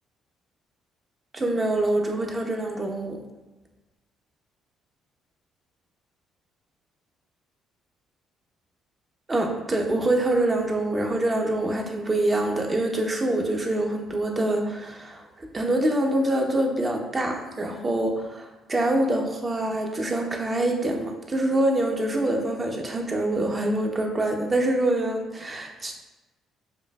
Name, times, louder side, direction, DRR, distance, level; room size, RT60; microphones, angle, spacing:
voice 1, 1.3-3.2 9.3-26.0, right 1 dB, 30° right, 1 dB, 0.9 m, -25 dB
6.9 x 2.5 x 2.4 m, 1.1 s
hypercardioid pair, 60°, 0 cm